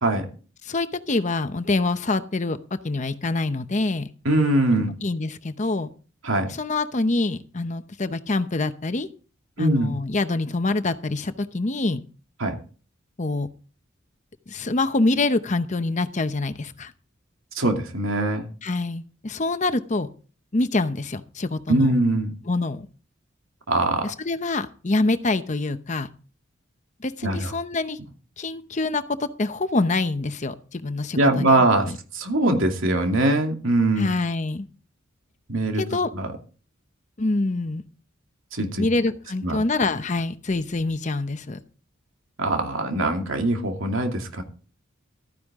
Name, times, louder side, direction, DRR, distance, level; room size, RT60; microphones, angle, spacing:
voice 1, 0.6-2.6 2.8-4.1 5.0-5.9 6.5-9.1 9.6-12.0 13.2-13.5 14.5-16.9 18.6-20.1 20.5-21.9 22.5-22.9 24.0-26.1 27.0-28.0 28.4-32.0 34.0-34.7 35.7-36.1 37.2-37.8 38.8-41.6, left 2 dB, 35° left, 11 dB, 0.8 m, -25 dB
voice 2, 4.2-4.9 6.2-6.5 9.6-10.0 12.4-12.6 17.5-18.5 21.7-22.3 23.7-24.1 27.2-27.5 31.1-34.1 35.5-35.8 36.1-36.3 38.5-38.9 39.4-39.6 42.4-44.4, right 2 dB, 85° right, 3 dB, 2.5 m, -22 dB
13.5 x 10.0 x 3.7 m, 0.37 s
head